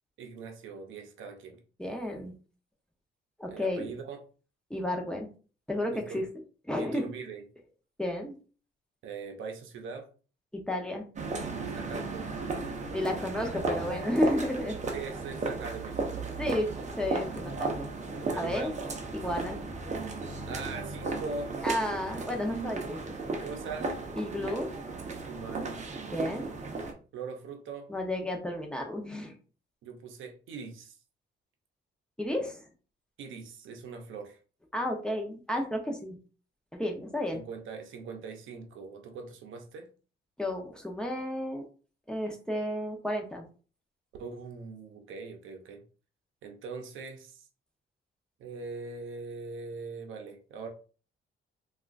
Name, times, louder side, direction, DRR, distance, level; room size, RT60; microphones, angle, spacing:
voice 1, 0.2-1.6 3.5-4.2 5.9-6.3 6.8-7.4 9.0-10.1 11.6-12.3 14.9-16.6 18.3-18.8 20.5-21.6 23.4-23.9 25.2-25.8 27.1-27.9 29.8-31.0 33.2-34.4 37.3-39.9 44.2-45.8 46.4-47.5 48.4-50.7, right 4 dB, 80° right, 4 dB, 0.7 m, -41 dB
voice 2, 1.8-2.3 3.4-3.9 4.7-5.3 5.7-6.2 6.7-7.1 8.0-8.4 10.7-11.0 12.9-14.8 16.4-17.7 18.0-18.7 19.1-19.6 21.6-23.0 24.2-24.7 26.1-26.5 27.9-29.3 32.2-32.6 34.7-36.2 36.7-37.4 40.4-41.6 42.1-43.5, left 1 dB, 5° left, 1 dB, 0.8 m, -32 dB
sound 1, 11.2-26.9, right 3 dB, 35° right, 0.7 m, -35 dB
3.5 x 2.4 x 2.5 m, 0.37 s
cardioid pair, 90°, 20 cm